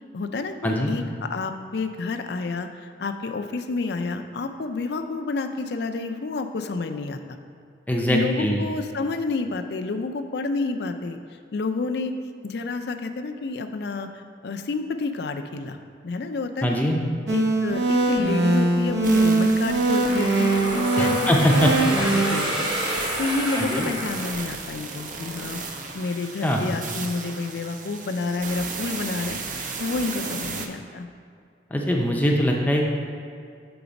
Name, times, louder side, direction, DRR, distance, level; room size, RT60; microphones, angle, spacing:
voice 1, 0.1-7.2 8.1-11.2 11.5-12.2 12.4-15.8 16.0-16.8 17.3-22.7 23.2-25.6 25.9-31.1, left 3 dB, 65° left, 7 dB, 0.4 m, -29 dB
voice 2, 7.9-8.6 16.6-17.0 21.0-21.7 23.6-23.9 26.4-26.6 31.7-32.8, equal, 10° left, -1 dB, 0.5 m, -22 dB
sound 1, 17.3-22.3, right 2 dB, 80° right, 0.9 m, -22 dB
sound 2, 19.0-30.7, right 4 dB, 45° right, 0.5 m, -35 dB
sound 3, 20.0-24.9, right 1 dB, 25° right, 1.1 m, -29 dB
6.9 x 3.9 x 5.1 m, 2.3 s
head